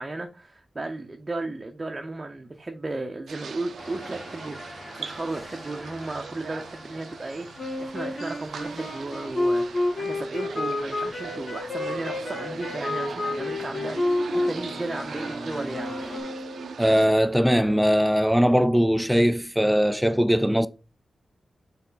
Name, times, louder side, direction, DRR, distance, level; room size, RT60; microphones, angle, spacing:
voice 1, 0.0-15.9, right 2 dB, 25° right, 0.7 m, -35 dB
sound 1, 3.3-17.1, right 6 dB, 85° right, 0.5 m, -40 dB
sound 2, 3.8-16.2, left 1 dB, 15° left, 1.2 m, -45 dB
sound 3, 7.6-16.8, left 2 dB, 45° left, 1.9 m, -30 dB
voice 2, 16.8-20.7, equal, ahead, 0.3 m, -20 dB
6.9 x 3.7 x 3.9 m
wide cardioid pair, 100°, 0 cm